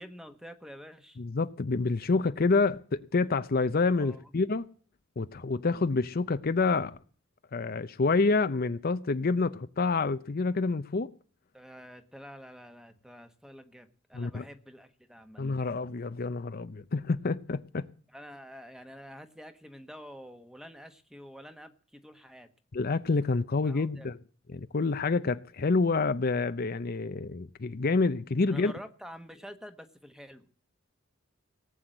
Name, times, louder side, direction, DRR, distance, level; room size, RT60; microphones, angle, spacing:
voice 1, 0.0-1.2 3.9-4.2 11.5-15.4 18.1-22.5 23.6-24.1 28.5-30.4, equal, 5° right, 1.2 m, -48 dB
voice 2, 1.2-4.7 5.2-7.0 7.5-11.1 14.1-14.4 15.4-17.8 22.7-24.2 24.5-28.7, left 3 dB, 50° left, 0.6 m, -28 dB
18.0 x 7.8 x 7.8 m
head